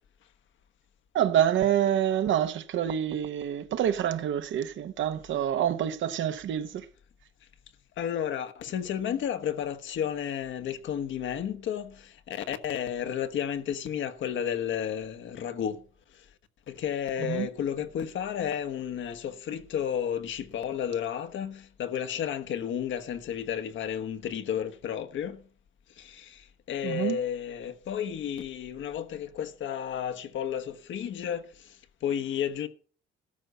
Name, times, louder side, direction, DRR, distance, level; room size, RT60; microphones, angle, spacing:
voice 1, 1.1-6.8 17.3-17.5 26.8-27.2, right 10 dB, 75° right, 1.1 m, -27 dB
voice 2, 8.0-15.8 16.1-16.2 16.7-25.4 26.0-32.7, left 9 dB, 75° left, 1.3 m, -32 dB
13.5 x 5.4 x 8.1 m
cardioid pair, 90°, 20 cm